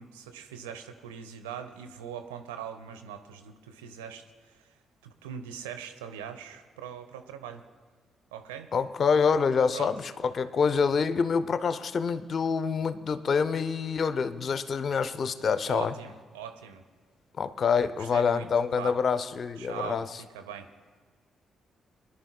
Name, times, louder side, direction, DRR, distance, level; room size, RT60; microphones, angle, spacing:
voice 1, 0.0-4.8 5.0-7.6 8.3-8.7 9.7-9.9 15.7-16.8 18.0-18.5 18.7-19.0 19.6-20.7, right 8 dB, 80° right, 7 dB, 0.7 m, -41 dB
voice 2, 8.7-15.9 17.4-20.1, left 5 dB, 50° left, 12 dB, 0.6 m, -26 dB
23.5 x 11.0 x 2.3 m, 1.5 s
hypercardioid pair, 40°, 0 cm